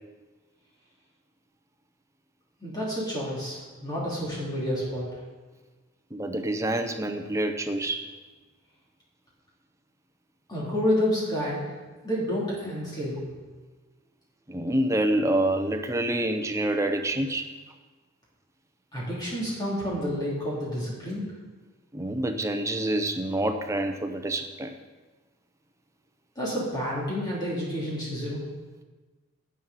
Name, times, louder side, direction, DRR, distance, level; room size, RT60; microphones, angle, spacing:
voice 1, 2.6-5.1 10.5-11.7 12.0-13.2 18.9-21.2 26.4-28.4, equal, 20° left, -6 dB, 3.1 m, -29 dB
voice 2, 6.1-8.1 14.5-17.5 21.9-24.7, right 1 dB, 15° right, 6 dB, 0.6 m, -27 dB
10.0 x 9.0 x 4.1 m, 1.3 s
head